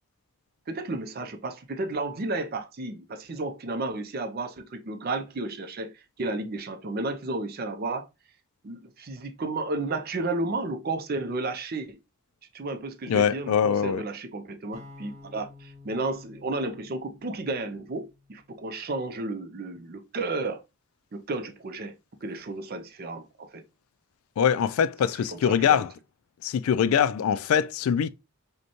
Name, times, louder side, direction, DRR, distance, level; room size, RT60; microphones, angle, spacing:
voice 1, 0.7-8.1 8.6-12.0 12.5-20.6 21.1-21.9 22.2-23.6 25.3-25.8, right 2 dB, 45° right, 0.5 m, -32 dB
voice 2, 13.1-14.0 24.4-25.9 26.4-28.1, left 8 dB, 80° left, 0.3 m, -23 dB
sound 1, 14.7-18.9, left 3 dB, 15° right, 1.5 m, -51 dB
5.1 x 2.2 x 2.9 m
head